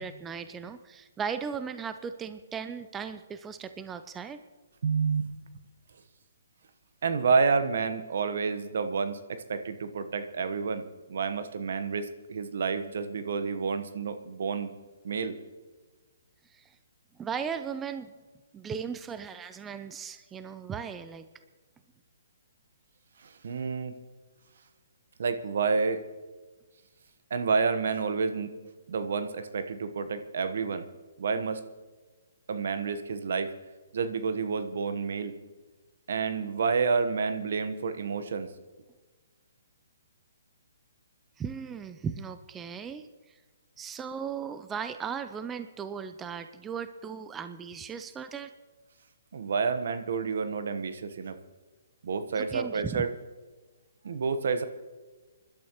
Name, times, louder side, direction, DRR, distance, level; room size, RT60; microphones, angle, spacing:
voice 1, 0.0-4.4 16.5-16.7 17.2-18.1 18.5-21.2 41.4-43.1 43.8-48.5 52.3-53.1, right 6 dB, 15° right, 10 dB, 0.5 m, -37 dB
voice 2, 4.8-5.3 7.0-14.7 15.0-15.4 23.2-24.0 25.2-26.0 27.3-28.5 28.9-30.8 31.2-31.6 32.5-33.5 33.9-35.4 36.1-38.5 49.3-51.4 52.0-53.1 54.0-54.6, right 5 dB, 65° right, 10 dB, 1.1 m, -29 dB
26.0 x 12.0 x 3.0 m, 1.3 s
hypercardioid pair, 145°, 0 cm